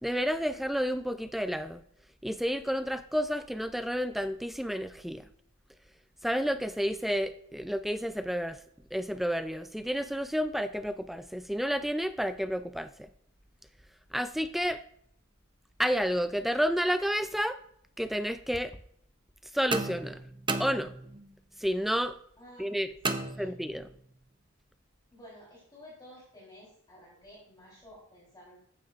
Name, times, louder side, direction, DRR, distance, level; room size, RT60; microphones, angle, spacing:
voice 1, 0.0-1.8 2.2-5.2 6.2-8.6 8.9-13.1 14.1-14.8 15.8-17.6 18.0-18.8 19.5-20.2 20.6-20.9 21.6-22.2 22.6-22.9 23.4-23.9, equal, ahead, 10 dB, 0.3 m, -30 dB
sound 1, 19.7-21.4 23.0-24.0, right 3 dB, 25° right, 0.7 m, -34 dB
voice 2, 22.4-22.7 23.2-23.5 25.1-28.6, left 1 dB, 20° left, -6 dB, 3.6 m, -52 dB
14.5 x 9.3 x 2.5 m, 0.67 s
head